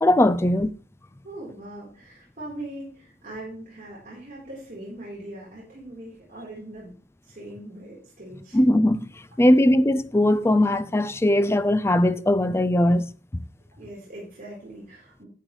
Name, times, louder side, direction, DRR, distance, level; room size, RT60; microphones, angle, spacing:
voice 1, 0.0-0.7 8.5-9.1 9.4-13.1, left 1 dB, 15° left, 0.4 m, -19 dB
voice 2, 1.2-7.0 7.3-8.6 13.8-15.3, right 1 dB, 45° right, 4.0 m, -40 dB
11.0 x 8.5 x 3.2 m
head